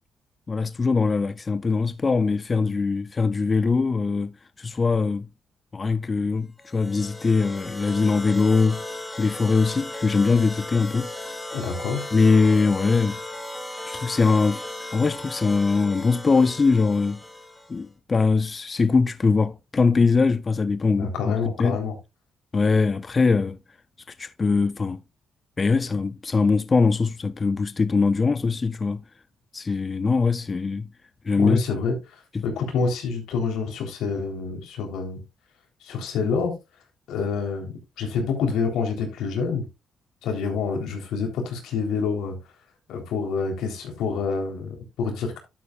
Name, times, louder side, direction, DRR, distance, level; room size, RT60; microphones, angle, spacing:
voice 1, 0.5-5.3 5.7-8.8 9.2-11.1 12.1-13.2 13.8-14.7 14.9-17.2 17.7-21.8 22.5-23.6 24.1-25.0 25.6-29.0 29.5-30.9 31.2-31.6 32.3-32.4, left 4 dB, 30° left, 0.5 m, -22 dB
sound 1, 6.6-17.8, left 1 dB, 10° left, 2.3 m, -36 dB
voice 2, 11.5-12.0 21.0-21.9 31.4-31.9 32.4-35.2 35.8-36.5 37.1-39.7 40.2-42.4 42.9-45.4, left 5 dB, 85° left, 3.6 m, -27 dB
11.5 x 8.4 x 2.4 m
cardioid pair, 90°, 0 cm